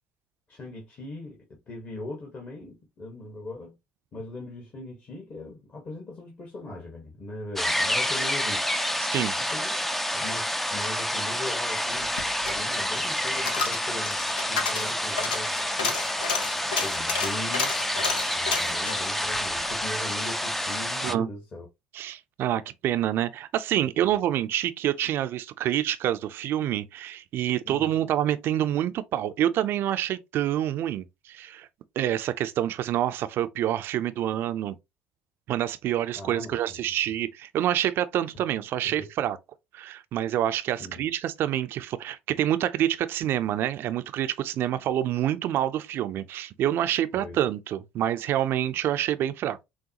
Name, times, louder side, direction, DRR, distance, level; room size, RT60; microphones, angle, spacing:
voice 1, 0.5-3.7 4.1-9.1 9.4-9.8 10.1-12.2 12.4-14.2 14.5-16.0 16.8-21.7 27.6-27.9 36.2-36.8 38.8-39.1 40.8-41.0 47.1-47.4, left 2 dB, 40° left, 1.5 m, -40 dB
sound 1, 7.6-21.1, equal, 5° left, 0.4 m, -28 dB
Coin (dropping), 11.9-20.4 20.7-20.8, left 5 dB, 85° left, 0.6 m, -32 dB
voice 2, 21.9-31.7 32.0-34.8 35.5-39.4 39.7-49.6, right 11 dB, 55° right, 0.5 m, -27 dB
6.3 x 2.3 x 2.8 m
hypercardioid pair, 60°, 5 cm